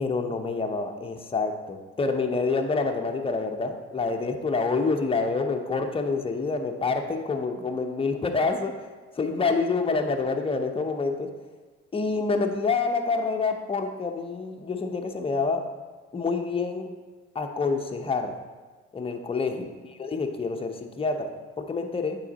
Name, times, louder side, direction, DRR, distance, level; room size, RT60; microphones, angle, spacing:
voice 1, 0.0-11.3 11.9-15.6 16.1-16.9 17.3-18.4 18.9-19.7 20.0-22.2, left 4 dB, 15° left, 4 dB, 0.7 m, -27 dB
8.4 x 3.3 x 3.9 m, 1.3 s
hypercardioid pair, 55°, 37 cm